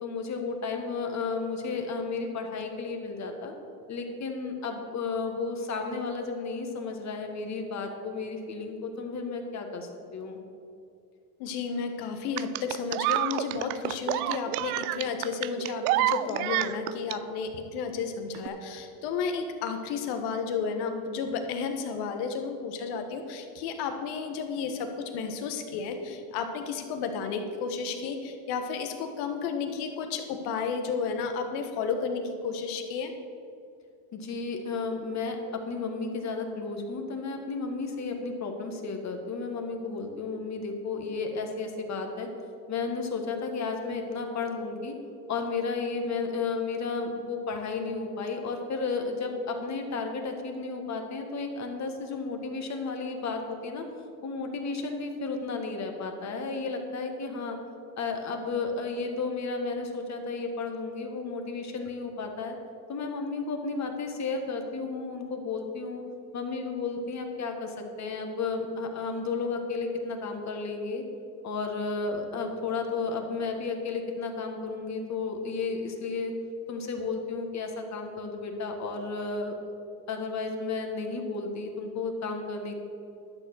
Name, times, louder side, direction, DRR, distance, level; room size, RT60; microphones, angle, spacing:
voice 1, 0.0-3.5 3.9-10.4 34.1-42.3 42.7-45.0 45.3-53.8 54.2-57.6 58.0-62.6 62.9-66.0 66.3-71.0 71.4-76.3 76.7-79.6 80.1-82.8, left 4 dB, 40° left, 4 dB, 1.7 m, -33 dB
voice 2, 11.4-33.1, left 5 dB, 65° left, 6 dB, 1.5 m, -32 dB
sound 1, 12.4-17.2 18.3-18.5, right 16 dB, 80° right, 0.5 m, -28 dB
11.5 x 6.7 x 6.4 m, 2.5 s
supercardioid pair, 90°, 43 cm